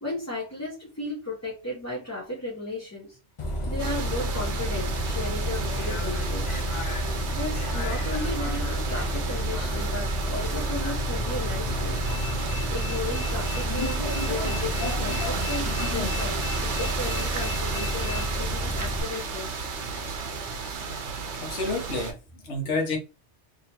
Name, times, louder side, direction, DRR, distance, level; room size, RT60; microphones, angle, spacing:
voice 1, 0.0-3.2 3.6-6.6 7.3-12.1 12.7-19.5, left 2 dB, 15° left, 1.0 m, -35 dB
Bus, 3.4-19.0, equal, 45° left, 0.4 m, -30 dB
sound 1, 3.8-22.1, right 5 dB, 70° right, 1.0 m, -33 dB
voice 2, 21.4-23.0, left 2 dB, 65° left, 1.2 m, -29 dB
3.1 x 2.9 x 2.9 m
omnidirectional pair, 1.2 m